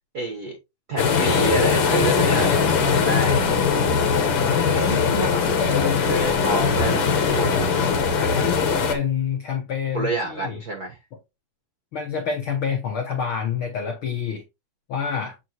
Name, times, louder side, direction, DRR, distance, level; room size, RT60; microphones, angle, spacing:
voice 1, 0.1-0.6 0.9-3.5 5.3-5.4 5.8-7.7 9.9-11.0, right 2 dB, 70° right, 0.9 m, -28 dB
sound 1, 1.0-8.9, left 5 dB, 60° left, 1.5 m, -20 dB
voice 2, 4.5-6.4 8.2-10.6 11.9-14.4 14.9-15.4, left 7 dB, 90° left, 1.1 m, -28 dB
8.2 x 4.7 x 3.0 m
omnidirectional pair, 4.0 m